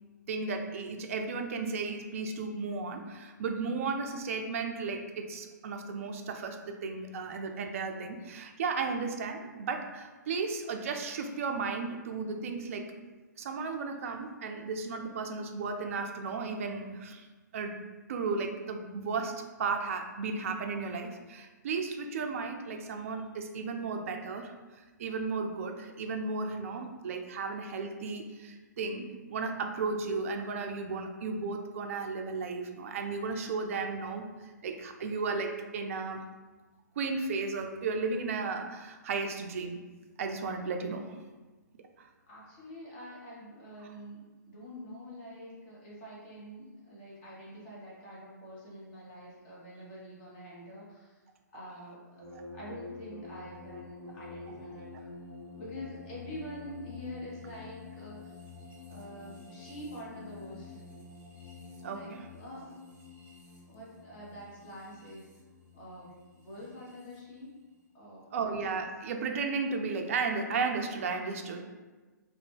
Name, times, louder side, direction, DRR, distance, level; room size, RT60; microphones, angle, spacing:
voice 1, 0.3-12.9 13.4-17.3 17.5-17.8 18.1-24.6 25.0-36.2 37.0-39.8 40.2-41.2 42.0-42.1 52.3-52.4 61.8-62.3 68.3-71.6, right 4 dB, 45° right, 4 dB, 0.3 m, -34 dB
voice 2, 42.3-51.2 51.5-55.1 55.6-58.4 58.9-60.8 61.9-62.7 63.7-65.3 65.7-66.1 66.4-67.6 67.9-68.5 71.5-71.6, equal, 35° left, -6 dB, 1.1 m, -46 dB
sound 1, 52.2-67.2, left 4 dB, 20° right, 0.7 m, -48 dB
2.7 x 2.1 x 3.5 m, 1.3 s
figure-of-eight pair, 120°, 10 cm